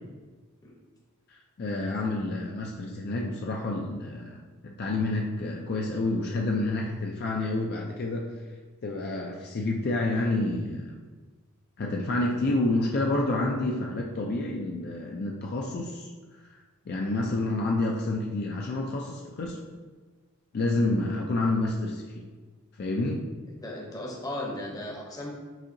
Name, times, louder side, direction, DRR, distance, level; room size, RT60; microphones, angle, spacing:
voice 1, 1.3-4.4 4.6-8.3 8.8-10.9 11.8-16.1 16.5-16.6 16.9-19.6 20.5-22.3 22.8-23.2, left 2 dB, 45° left, -1 dB, 0.4 m, -29 dB
voice 2, 23.6-25.3, left 1 dB, 15° left, -1 dB, 0.7 m, -36 dB
7.2 x 2.8 x 2.6 m, 1.4 s
head